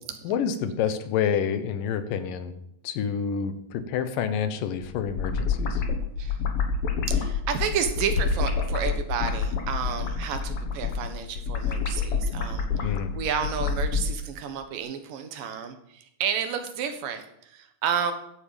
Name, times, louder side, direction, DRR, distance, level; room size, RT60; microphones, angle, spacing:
voice 1, 0.2-2.5 2.8-5.8 12.8-13.1, left 7 dB, 85° left, 10 dB, 2.8 m, -28 dB
sound 1, 4.8-14.1, left 5 dB, 50° left, 2.3 m, -28 dB
voice 2, 7.1-18.1, right 7 dB, 90° right, 7 dB, 3.1 m, -31 dB
14.5 x 10.0 x 5.1 m, 0.76 s
omnidirectional pair, 3.8 m